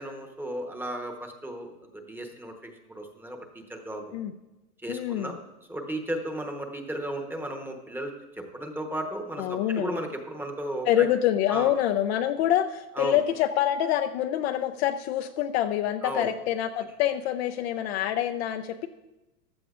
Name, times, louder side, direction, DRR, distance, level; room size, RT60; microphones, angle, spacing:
voice 1, 0.0-4.1 4.8-5.4 5.7-11.1 11.5-11.8 13.0-13.2 16.0-16.3, right 1 dB, 5° right, 4 dB, 1.0 m, -35 dB
voice 2, 4.9-5.4 9.4-10.0 10.9-18.9, left 11 dB, 45° left, 8 dB, 0.5 m, -26 dB
15.0 x 12.0 x 2.5 m, 1.0 s
hypercardioid pair, 125°, 46 cm